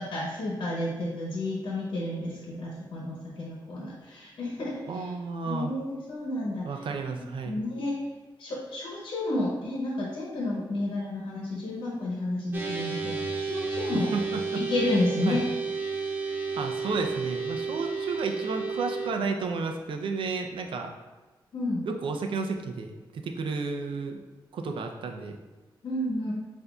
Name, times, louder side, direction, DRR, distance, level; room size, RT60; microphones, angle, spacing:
voice 1, 0.0-5.1 5.4-8.0 8.4-14.1 14.5-15.4 21.5-21.8 25.8-26.3, left 1 dB, 80° left, -4 dB, 1.0 m, -31 dB
voice 2, 4.9-5.7 6.6-7.6 13.9-14.6 15.3-15.4 16.5-20.9 21.9-24.2 24.5-25.4, right 4 dB, 80° right, 4 dB, 0.5 m, -32 dB
sound 1, 12.5-19.1, right 4 dB, 25° right, 0.6 m, -32 dB
7.8 x 2.6 x 2.3 m, 1.2 s
wide cardioid pair, 120°, 9 cm